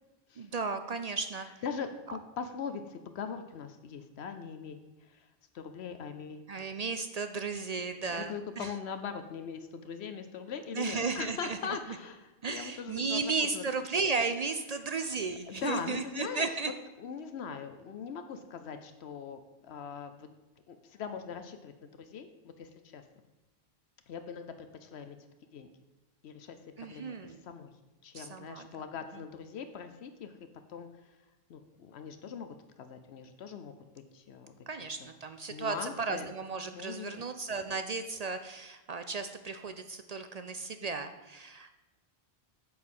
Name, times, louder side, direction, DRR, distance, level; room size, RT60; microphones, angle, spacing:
voice 1, 0.4-1.6 2.1-2.2 6.5-8.7 10.7-11.8 12.4-16.7 26.8-27.5 28.1-28.7 34.7-41.8, right 4 dB, 50° right, 8 dB, 0.5 m, -35 dB
voice 2, 1.6-5.3 5.5-6.4 7.8-13.6 15.5-16.5 17.0-20.3 20.7-23.0 24.1-25.2 25.5-25.7 26.2-27.7 28.0-30.4 30.7-31.2 31.5-33.7 34.1-34.5 35.5-36.3 36.7-37.3, left 6 dB, 80° left, 9 dB, 0.9 m, -41 dB
8.5 x 4.4 x 7.3 m, 1.1 s
omnidirectional pair, 1.1 m